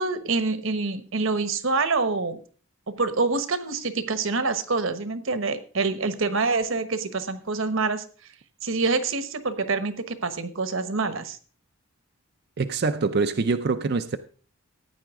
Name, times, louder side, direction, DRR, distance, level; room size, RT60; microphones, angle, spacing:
voice 1, 0.0-2.4 2.9-8.0 8.6-11.4, right 3 dB, 65° right, 1.2 m, -26 dB
voice 2, 12.6-14.2, right 4 dB, 50° right, 0.5 m, -24 dB
15.0 x 9.4 x 3.7 m
head